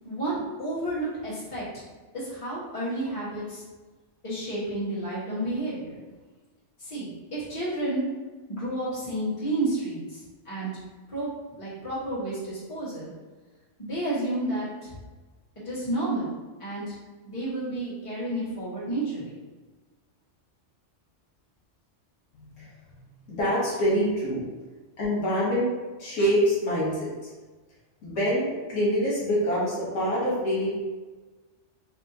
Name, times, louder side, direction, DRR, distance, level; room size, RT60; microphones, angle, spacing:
voice 1, 0.0-1.8 2.1-3.6 4.2-6.0 6.8-8.0 8.5-10.8 11.1-11.3 11.6-13.1 13.8-14.9 15.6-16.3 16.6-16.9 17.2-19.4 26.2-26.3, right 1 dB, 25° left, -10 dB, 1.3 m, -31 dB
voice 2, 23.3-24.4 25.0-25.7 26.0-27.3 28.0-30.7, equal, 75° left, -7 dB, 1.4 m, -25 dB
3.3 x 2.7 x 2.7 m, 1.3 s
omnidirectional pair, 1.3 m